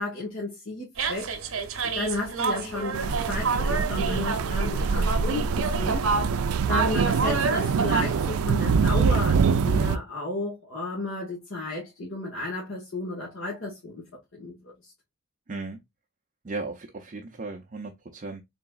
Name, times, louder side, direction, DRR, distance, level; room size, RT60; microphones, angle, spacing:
voice 1, 0.0-1.3 1.8-6.1 6.7-14.0 14.4-14.5, left 2 dB, 65° left, 1.4 m, -33 dB
sound 1, 1.0-8.0, right 4 dB, 70° right, 0.8 m, -29 dB
sound 2, 2.9-10.0, right 5 dB, 85° right, 0.4 m, -24 dB
voice 2, 15.5-15.8 16.4-18.4, right 3 dB, 35° right, 0.5 m, -36 dB
3.8 x 3.6 x 2.3 m
head